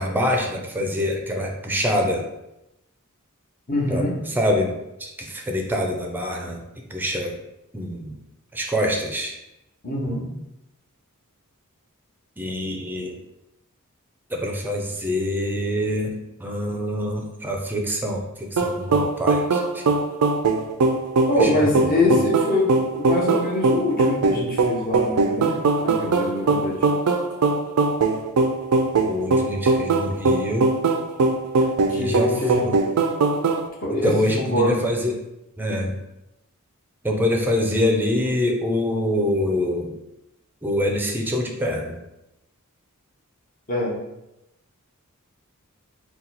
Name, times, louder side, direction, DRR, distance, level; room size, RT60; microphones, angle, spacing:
voice 1, 0.0-2.3 3.9-6.6 6.9-7.4 7.7-8.1 8.5-9.3 12.4-13.2 14.3-16.1 16.4-19.8 21.4-22.0 29.0-30.7 31.9-32.3 32.6-32.7 34.0-35.1 35.6-36.0 37.0-39.9 40.6-42.0, left 1 dB, 10° right, 1 dB, 0.5 m, -25 dB
voice 2, 3.7-4.2 9.8-10.3 21.3-26.8 31.6-32.8 33.8-34.8 43.7-44.0, left 1 dB, 40° left, -4 dB, 1.0 m, -24 dB
sound 1, 18.6-33.7, right 3 dB, 80° right, 0.4 m, -21 dB
4.1 x 2.3 x 4.0 m, 0.89 s
head